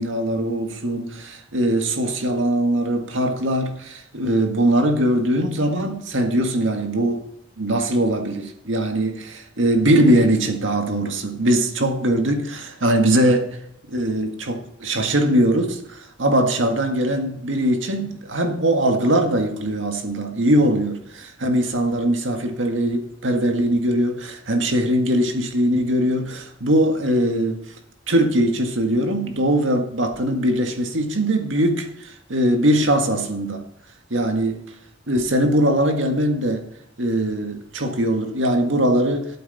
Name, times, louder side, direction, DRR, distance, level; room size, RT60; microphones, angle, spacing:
voice 1, 0.0-7.2 7.6-13.5 13.9-27.6 28.1-33.6 34.1-34.6 35.1-36.6 37.0-39.3, right 1 dB, 85° right, 1.9 m, -21 dB
13.0 x 8.6 x 4.1 m
head